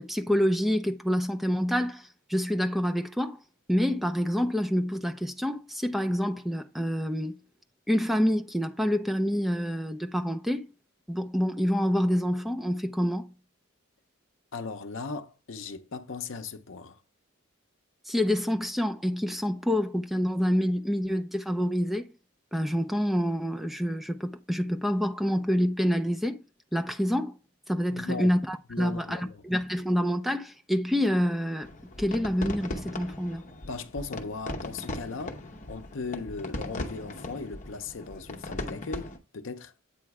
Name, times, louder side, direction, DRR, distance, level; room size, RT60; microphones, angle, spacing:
voice 1, 0.0-3.4 3.7-7.3 7.9-10.7 11.1-13.3 18.1-22.1 22.5-26.4 26.7-27.3 27.7-31.7 32.0-33.4, equal, ahead, 0.5 m, -27 dB
voice 2, 14.5-17.0 27.9-28.3 28.7-29.4 33.6-35.4 35.7-39.7, left 4 dB, 65° left, 0.7 m, -38 dB
sound 1, 31.6-39.2, left 2 dB, 40° left, 0.9 m, -38 dB
8.6 x 3.1 x 4.7 m
head